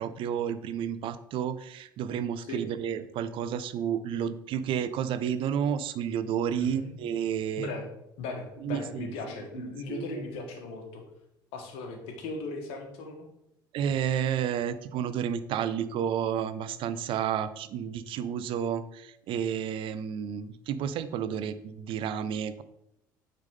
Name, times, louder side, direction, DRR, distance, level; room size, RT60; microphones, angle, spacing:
voice 1, 0.0-7.7 8.6-9.1 9.9-10.2 13.7-22.6, right 8 dB, 50° right, 13 dB, 0.5 m, -31 dB
voice 2, 6.6-6.9 7.6-7.9 8.2-11.0 11.5-13.3, left 3 dB, 65° left, 4 dB, 1.3 m, -38 dB
8.8 x 3.7 x 3.7 m, 0.81 s
hypercardioid pair, 60°, 11 cm